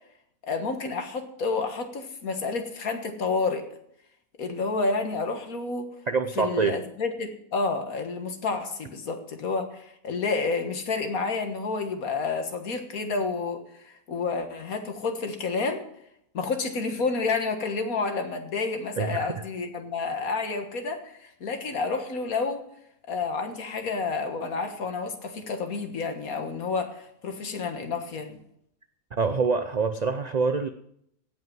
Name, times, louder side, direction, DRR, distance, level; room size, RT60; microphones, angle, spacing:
voice 1, 0.4-3.6 4.4-5.9 6.4-15.8 16.3-22.6 23.1-28.4, left 4 dB, 70° left, 6 dB, 2.0 m, -30 dB
voice 2, 6.1-6.8 19.0-19.3 29.1-30.7, right 5 dB, 65° right, 10 dB, 0.4 m, -25 dB
16.5 x 5.7 x 7.6 m, 0.74 s
omnidirectional pair, 1.5 m